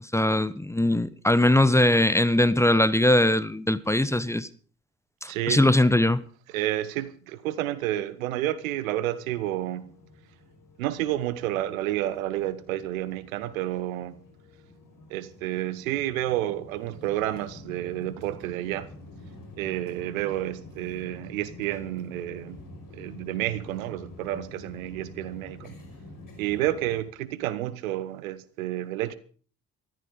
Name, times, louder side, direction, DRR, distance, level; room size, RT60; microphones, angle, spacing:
voice 1, 0.1-4.5 5.2-6.3, left 1 dB, 5° left, 0.9 m, -21 dB
voice 2, 5.3-5.6 6.5-9.9 10.8-14.2 15.1-18.9 19.6-22.6 22.9-25.8 26.4-29.2, right 14 dB, 80° right, 1.0 m, -30 dB
sound 1, 8.6-27.0, left 2 dB, 50° left, 5.4 m, -47 dB
14.5 x 13.5 x 5.1 m
figure-of-eight pair, 50°, 41 cm